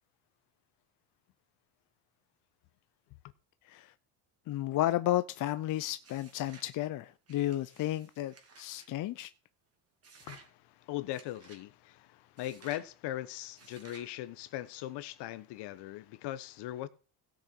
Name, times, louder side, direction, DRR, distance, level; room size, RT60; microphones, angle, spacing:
voice 1, 4.5-9.3, left 14 dB, 45° left, 0.6 m, -32 dB
sound 1, 6.0-6.7 7.3-8.9 10.0-10.5 11.1-11.6 12.4-12.9 13.6-14.1, right 4 dB, 30° right, 2.4 m, -56 dB
voice 2, 10.2-16.9, left 14 dB, 65° left, 1.1 m, -40 dB
16.5 x 6.4 x 4.5 m
cardioid pair, 115°, 44 cm